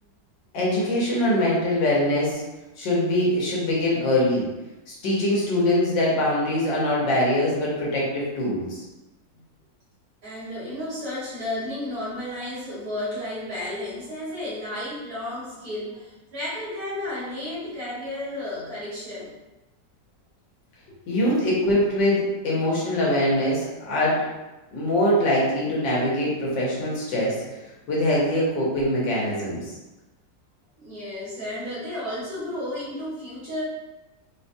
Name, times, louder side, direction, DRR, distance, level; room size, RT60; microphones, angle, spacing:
voice 1, 0.5-2.4 2.8-4.5 4.9-8.8 21.1-24.2 24.7-27.4 27.9-29.7, left 1 dB, 85° left, -5 dB, 1.7 m, -23 dB
voice 2, 10.2-19.3 30.8-33.6, left 1 dB, 55° right, -9 dB, 1.9 m, -32 dB
4.5 x 2.2 x 2.6 m, 1.1 s
omnidirectional pair, 1.9 m